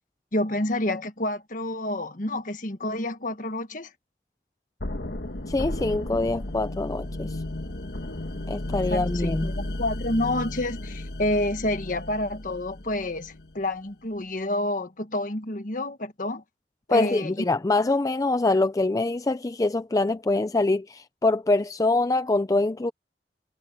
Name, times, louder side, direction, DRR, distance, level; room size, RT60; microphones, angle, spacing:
voice 1, 0.3-3.9 8.9-16.4 16.9-17.3, left 1 dB, 50° left, 1.6 m, -29 dB
sound 1, 4.8-13.7, left 1 dB, 70° left, 1.5 m, -34 dB
voice 2, 5.5-7.4 8.5-9.5 16.9-22.9, left 2 dB, 20° left, 0.4 m, -24 dB
head